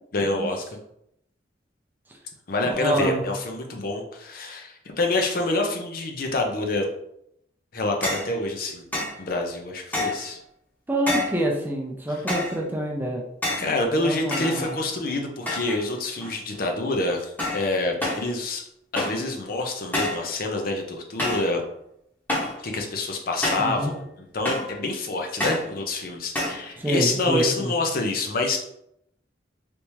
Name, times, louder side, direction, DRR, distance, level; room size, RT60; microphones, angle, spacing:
voice 1, 0.1-0.6 2.5-6.9 7.7-8.8 9.2-10.4 13.6-18.6 18.9-21.6 22.6-28.6, left 2 dB, 55° left, 2 dB, 0.6 m, -27 dB
voice 2, 2.6-3.2 10.9-13.2 13.9-14.7 23.6-23.9 26.8-27.7, right 1 dB, 10° right, 0 dB, 0.5 m, -27 dB
sound 1, 8.0-8.3 8.9-9.2 9.9-10.3 11.1-11.4 12.3-12.6 13.4-13.7 14.3-15.0 15.5-15.8 16.2-16.6 17.4-17.7 18.0-18.3 19.0-19.3 19.9-20.3 21.2-21.5 22.3-22.6 23.4-23.8 24.4-24.8 25.4-25.7 26.3-26.6, left 1 dB, 10° left, 0.9 m, -28 dB
3.4 x 2.8 x 3.0 m, 0.76 s
head